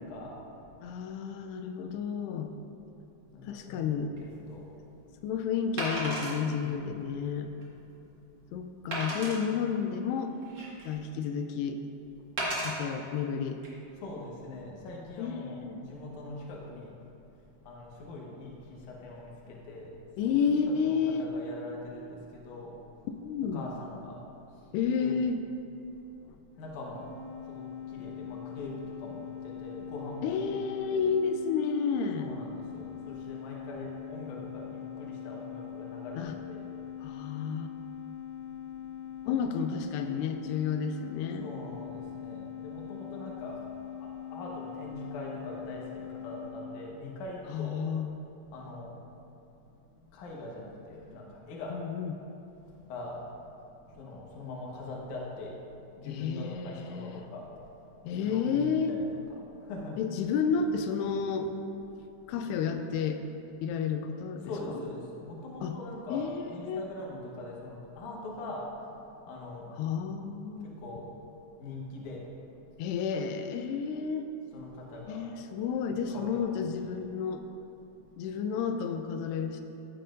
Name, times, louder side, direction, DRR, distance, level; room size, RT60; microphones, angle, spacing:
voice 1, 0.0-0.7 3.0-5.2 6.5-7.1 14.0-17.3 17.6-19.9 20.2-20.5 20.8-23.1 23.5-24.7 25.0-25.2 26.3-31.1 32.2-37.0 38.5-39.5 41.4-47.8 48.5-49.2 49.5-51.8 52.7-53.3 53.7-57.6 58.0-59.1 59.4-60.0 64.4-68.8 69.1-69.8 70.6-71.2 71.5-72.8 74.5-75.3 76.1-76.5 77.8-78.1, left 2 dB, 60° left, -2 dB, 2.2 m, -43 dB
voice 2, 0.8-2.5 3.4-4.1 5.2-7.5 8.5-10.3 10.9-11.8 12.6-13.6 15.2-15.8 20.2-21.3 23.2-23.6 24.7-25.4 30.2-32.3 36.2-36.3 37.0-37.7 39.3-41.5 47.5-48.2 51.7-52.2 56.1-57.2 58.1-58.9 60.0-61.5 62.3-63.2 63.6-64.8 65.6-65.8 66.1-66.8 69.8-70.7 72.8-74.3 75.1-77.4 78.2-79.6, left 6 dB, 90° left, 6 dB, 2.7 m, -31 dB
Wood, 4.2-4.3 5.8-6.4 7.0-7.1 7.6-7.7 8.9-9.4 10.2-11.0 12.4-12.7 13.5-13.7, right 1 dB, 45° right, 1.4 m, -33 dB
sound 1, 27.0-46.5, left 10 dB, 70° right, 2.6 m, -42 dB
14.5 x 7.7 x 2.6 m, 2.8 s
omnidirectional pair, 4.7 m